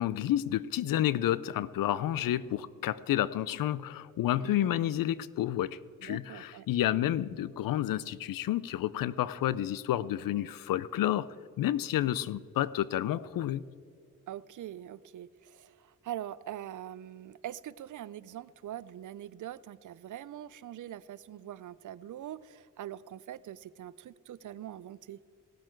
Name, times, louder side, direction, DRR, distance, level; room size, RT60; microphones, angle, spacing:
voice 1, 0.0-11.3 11.6-13.6, left 12 dB, 80° left, 18 dB, 0.5 m, -30 dB
voice 2, 4.4-4.8 6.0-6.7 11.9-12.1 14.3-25.2, right 11 dB, 65° right, 19 dB, 0.5 m, -43 dB
17.0 x 7.5 x 4.5 m, 2.3 s
cardioid pair, 60°, 33 cm